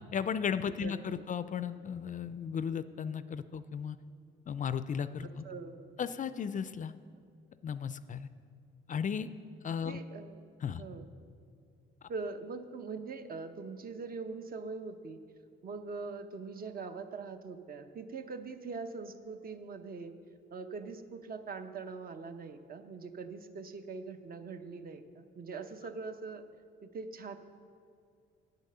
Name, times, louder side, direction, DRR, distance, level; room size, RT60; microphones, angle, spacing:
voice 1, 0.1-4.0 4.5-5.4 6.0-6.9 7.6-8.3 8.9-9.3 9.6-10.0 10.6-10.8, left 7 dB, 40° left, 14 dB, 0.4 m, -35 dB
voice 2, 5.4-6.0 9.8-10.4 10.8-11.1 12.1-15.2 15.6-20.1 20.5-26.4 26.8-27.4, right 4 dB, 50° right, 8 dB, 0.8 m, -42 dB
8.4 x 8.2 x 6.7 m, 2.3 s
cardioid pair, 90°, 20 cm